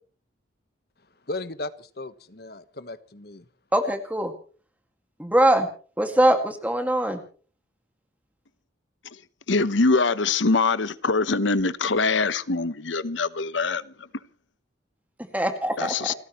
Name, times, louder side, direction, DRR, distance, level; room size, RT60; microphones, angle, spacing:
voice 1, 1.3-3.4, left 2 dB, 55° left, 1.3 m, -36 dB
voice 2, 3.7-4.3 5.2-5.7 6.0-7.2 15.2-16.1, right 1 dB, 10° right, 2.1 m, -22 dB
voice 3, 9.5-13.9 15.8-16.1, left 3 dB, 85° left, 1.0 m, -23 dB
30.0 x 14.5 x 3.1 m
head